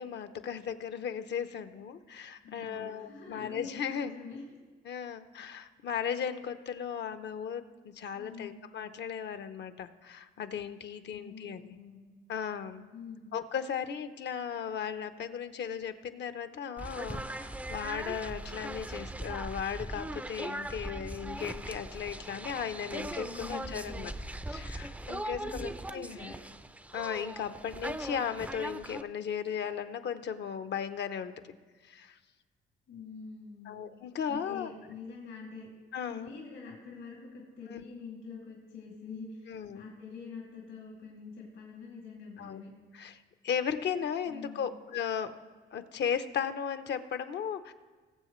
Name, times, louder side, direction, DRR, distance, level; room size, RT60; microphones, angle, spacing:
voice 1, 0.0-4.1 4.9-11.8 12.3-12.8 13.3-24.1 24.5-26.2 26.9-31.3 31.8-32.2 33.7-34.7 35.9-36.3 37.7-37.8 39.5-39.9 42.4-42.6 42.9-45.3 45.7-47.7, left 7 dB, 60° left, 10 dB, 0.7 m, -36 dB
voice 2, 2.4-4.4 8.1-8.6 11.1-12.0 12.9-13.3 23.1-24.0 25.3-25.6 26.1-26.4 32.9-33.8 34.3-35.7 36.1-42.7 44.3-44.8, left 5 dB, 80° left, -2 dB, 2.5 m, -46 dB
sound 1, 16.8-29.0, right 1 dB, 5° right, 0.4 m, -40 dB
21.0 x 7.3 x 3.1 m, 1.4 s
cardioid pair, 90°, 20 cm